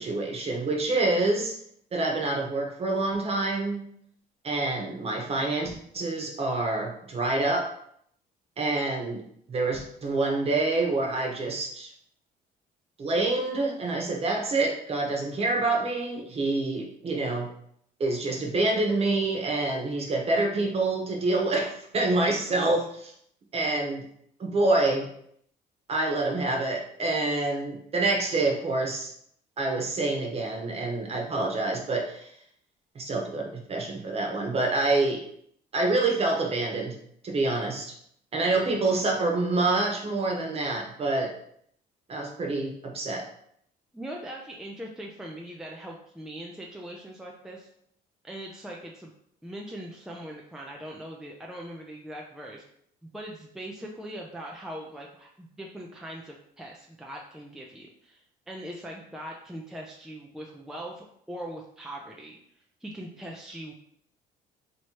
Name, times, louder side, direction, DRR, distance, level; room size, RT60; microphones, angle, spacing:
voice 1, 0.0-1.5 1.9-3.8 4.4-7.7 8.6-9.2 9.5-11.9 13.0-17.5 18.0-23.1 23.5-24.0 24.4-25.1 25.9-29.1 29.6-32.3 32.9-35.2 35.7-36.9 37.2-37.9 38.3-41.3 42.1-43.3, right 2 dB, 35° right, 1 dB, 1.0 m, -27 dB
voice 2, 43.9-47.7 48.2-49.1 49.4-52.6 53.0-62.4 62.8-63.7, right 1 dB, 5° right, -1 dB, 0.5 m, -41 dB
3.1 x 2.9 x 4.5 m, 0.68 s
cardioid pair, 110°, 17 cm